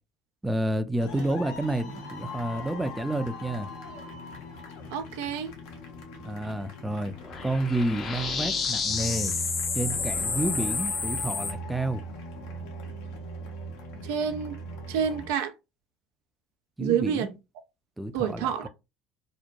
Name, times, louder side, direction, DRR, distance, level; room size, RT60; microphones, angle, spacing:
voice 1, 0.4-3.7 6.2-7.1 7.4-9.4 9.7-12.0 16.8-17.3 18.0-18.7, right 1 dB, 10° right, 0.4 m, -30 dB
sound 1, 1.0-15.3, equal, 80° left, 0.8 m, -40 dB
voice 2, 4.9-5.5 14.0-14.6 14.9-15.5 16.8-17.3 18.1-18.7, right 8 dB, 85° right, 0.4 m, -28 dB
sound 2, 7.2-11.5, left 5 dB, 45° left, 0.6 m, -30 dB
2.9 x 2.1 x 2.5 m
supercardioid pair, 80°, 0 cm